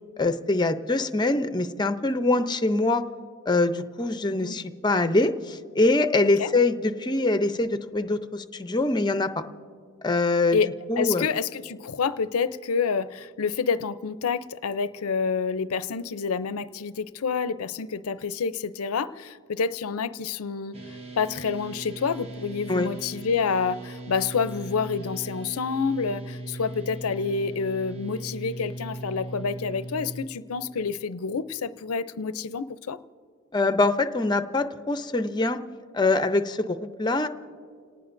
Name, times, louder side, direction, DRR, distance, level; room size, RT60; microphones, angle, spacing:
voice 1, 0.2-3.0 3.5-9.4 10.0-10.6 10.9-11.3 22.7-22.9 33.5-35.6 35.9-37.3, left 2 dB, 20° left, 9 dB, 0.6 m, -24 dB
voice 2, 11.0-20.7 21.2-33.0, left 5 dB, 90° left, 14 dB, 0.5 m, -28 dB
sound 1, 20.7-30.2, right 2 dB, 25° right, 0.9 m, -39 dB
29.5 x 18.5 x 2.6 m, 2.2 s
head